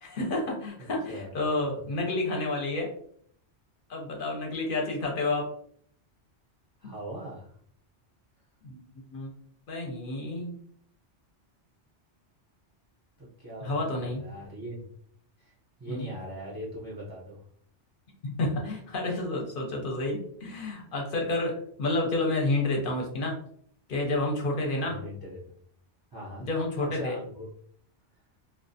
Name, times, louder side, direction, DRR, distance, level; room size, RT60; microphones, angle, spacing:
voice 1, 0.0-2.9 3.9-5.5 6.8-6.9 8.6-9.3 9.7-10.6 13.6-14.3 15.9-16.1 18.2-23.4 23.9-25.0 26.4-27.2, left 2 dB, 55° left, 0 dB, 0.7 m, -30 dB
voice 2, 6.8-7.5 13.2-14.8 15.4-15.5 15.8-17.4 24.8-25.5 26.1-26.5 26.8-27.5, right 1 dB, 30° right, -6 dB, 0.4 m, -40 dB
2.4 x 2.1 x 2.6 m, 0.63 s
omnidirectional pair, 1.2 m